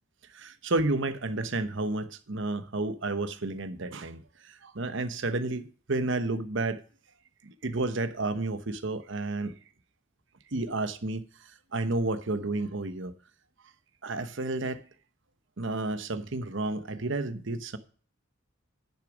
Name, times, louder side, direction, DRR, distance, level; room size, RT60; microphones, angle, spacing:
voice 1, 0.3-6.8 7.4-9.6 10.5-13.1 14.0-14.8 15.6-17.8, right 2 dB, 60° right, 1.0 m, -31 dB
10.5 x 6.6 x 5.0 m
head